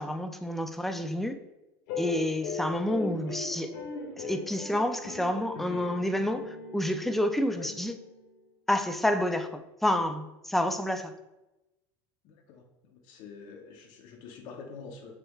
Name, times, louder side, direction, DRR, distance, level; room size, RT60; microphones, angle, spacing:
voice 1, 0.0-1.4 2.0-3.7 4.2-7.9 8.7-11.1, left 1 dB, 5° left, 8 dB, 0.3 m, -29 dB
sound 1, 1.9-8.4, left 3 dB, 75° left, 1.3 m, -39 dB
voice 2, 12.2-15.1, left 5 dB, 60° left, 3 dB, 0.9 m, -46 dB
6.8 x 3.3 x 2.4 m, 0.96 s
supercardioid pair, 145°, 9 cm